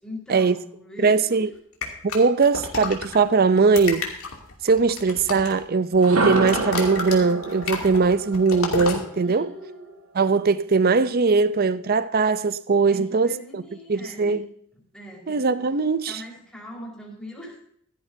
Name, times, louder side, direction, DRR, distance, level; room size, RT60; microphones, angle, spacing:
voice 1, 0.0-1.5 9.2-10.0 12.9-14.4 14.9-15.7 16.1-17.6, left 1 dB, 5° left, 4.5 m, -41 dB
voice 2, 1.0-1.5 2.0-4.1 4.6-9.5 10.1-13.6 13.9-14.4 15.3-16.2, right 4 dB, 45° right, 0.5 m, -20 dB
sound 1, 1.8-3.2 3.6-5.6 5.9-9.0, left 4 dB, 70° left, 2.6 m, -30 dB
sound 2, 5.9-9.9, right 2 dB, 75° right, 1.6 m, -28 dB
15.5 x 13.0 x 2.7 m
head